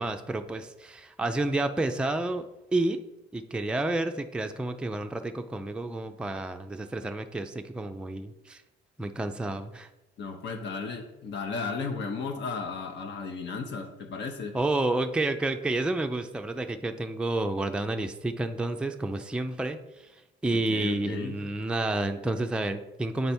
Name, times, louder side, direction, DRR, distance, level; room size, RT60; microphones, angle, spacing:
voice 1, 0.0-2.4 2.7-3.0 3.3-8.6 9.0-9.9 14.5-19.8 20.4-23.3, right 2 dB, 5° right, 6 dB, 0.4 m, -30 dB
voice 2, 10.2-14.6 20.5-21.4, left 4 dB, 65° left, 3 dB, 0.9 m, -35 dB
8.7 x 3.4 x 4.3 m, 0.98 s
cardioid pair, 90°, 20 cm